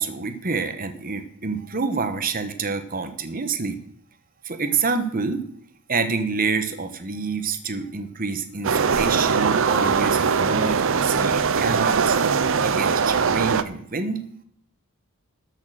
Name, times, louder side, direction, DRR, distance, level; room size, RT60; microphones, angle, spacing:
voice 1, 0.0-3.8 4.4-5.4 5.9-12.2 12.6-14.2, right 4 dB, 40° right, 9 dB, 1.2 m, -27 dB
sound 1, 8.6-13.6, right 5 dB, 60° right, 0.6 m, -21 dB
13.0 x 6.5 x 6.4 m, 0.65 s
head